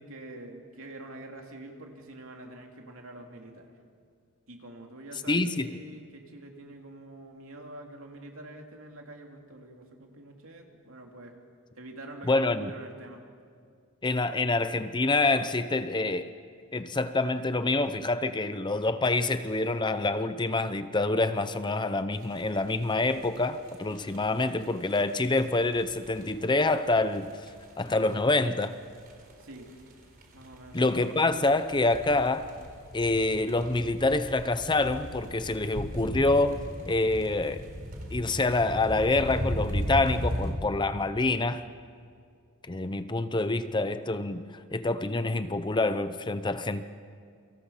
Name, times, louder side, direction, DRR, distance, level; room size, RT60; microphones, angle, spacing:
voice 1, 0.0-3.8 4.5-11.4 11.7-13.2 29.4-29.7 30.3-30.9, right 1 dB, 60° right, 2 dB, 3.1 m, -46 dB
voice 2, 5.3-5.8 12.3-12.7 14.0-16.3 16.7-27.3 27.8-28.8 30.7-32.5 32.9-36.6 36.9-37.7 38.1-41.6 42.7-46.8, left 2 dB, 20° left, 11 dB, 0.7 m, -26 dB
sound 1, 22.2-40.5, equal, 40° right, 3.9 m, -37 dB
29.0 x 24.5 x 5.8 m, 2.2 s
head